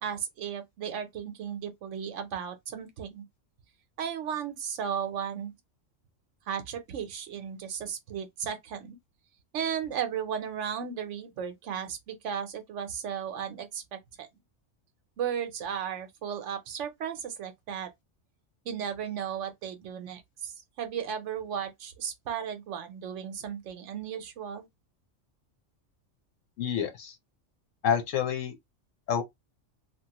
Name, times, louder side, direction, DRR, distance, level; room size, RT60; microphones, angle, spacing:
voice 1, 0.0-3.2 4.0-5.5 6.5-9.0 9.5-14.3 15.2-17.9 18.6-24.7, right 8 dB, 75° right, 1.0 m, -35 dB
voice 2, 26.6-27.2 27.8-28.5 29.1-29.2, left 8 dB, 80° left, 1.1 m, -28 dB
3.0 x 2.5 x 2.8 m
omnidirectional pair, 1.3 m